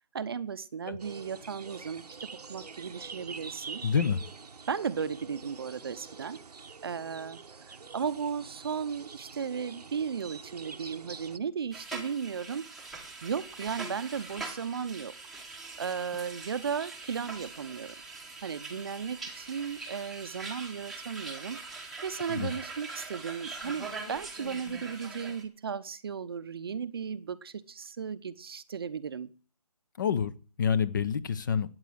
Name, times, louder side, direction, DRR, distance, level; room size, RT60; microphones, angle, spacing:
voice 1, 0.1-3.8 4.7-6.4 6.8-7.4 7.7-12.7 13.2-15.1 15.8-17.9 18.4-29.3, right 6 dB, 40° right, 0.7 m, -35 dB
sound 1, 1.0-11.4, right 5 dB, 75° right, 0.9 m, -46 dB
voice 2, 3.8-4.2 22.3-22.5 30.0-31.7, left 7 dB, 30° left, 0.8 m, -28 dB
sound 2, 11.7-25.4, right 3 dB, ahead, 1.1 m, -43 dB
13.5 x 9.2 x 7.7 m
figure-of-eight pair, 160°, 20 cm